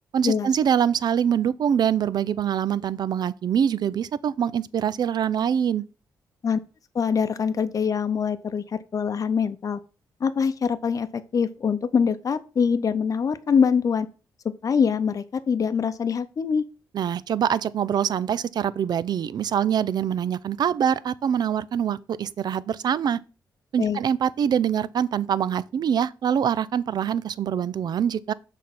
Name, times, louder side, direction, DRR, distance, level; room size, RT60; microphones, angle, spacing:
voice 1, 0.1-5.8 16.9-23.2 23.7-28.3, right 8 dB, 60° right, 0.5 m, -24 dB
voice 2, 6.9-9.8 10.2-14.1 14.4-16.7 23.8-24.0, left 6 dB, 45° left, 0.7 m, -24 dB
6.5 x 3.6 x 5.9 m
cardioid pair, 70°, 8 cm